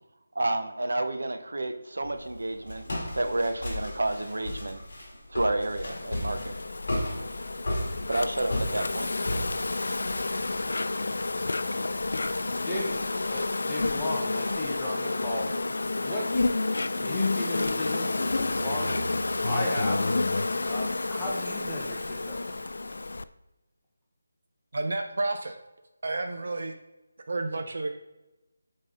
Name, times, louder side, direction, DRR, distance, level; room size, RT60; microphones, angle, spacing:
voice 1, 0.3-4.8 5.3-6.6 8.1-9.1, right 2 dB, 80° right, 8 dB, 0.7 m, -30 dB
Walk footsteps, 2.0-10.6, left 1 dB, 40° left, 2.0 m, -35 dB
Insect, 5.8-23.2, left 3 dB, 60° left, 0.3 m, -30 dB
sound 1, 8.6-13.3 16.6-21.2 23.3-23.4, right 1 dB, 75° left, 1.0 m, -47 dB
voice 2, 12.6-15.5 16.0-16.5 16.9-20.1 20.6-22.6, left 1 dB, 5° left, -7 dB, 0.8 m, -35 dB
voice 3, 24.7-25.6 26.0-26.7 27.3-27.9, right 2 dB, 45° right, 5 dB, 0.5 m, -30 dB
8.9 x 3.8 x 3.8 m, 1.0 s
figure-of-eight pair, 175°, 0 cm